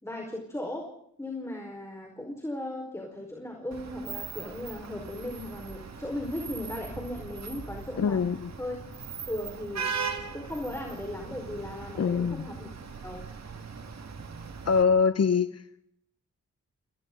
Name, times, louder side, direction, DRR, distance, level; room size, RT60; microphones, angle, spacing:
voice 1, 0.0-0.8 1.2-8.2 8.6-8.7 9.3-9.8 10.3-12.7 13.0-13.2, left 1 dB, 10° left, 1 dB, 4.9 m, -37 dB
Vehicle horn car horn honking / Traffic noise roadway noise, 3.7-14.8, right 5 dB, 60° right, 2.3 m, -39 dB
voice 2, 8.0-8.5 12.0-12.5 14.7-15.6, left 6 dB, 55° left, 12 dB, 1.0 m, -24 dB
29.0 x 29.0 x 4.0 m, 0.70 s
wide cardioid pair, 95°, 30 cm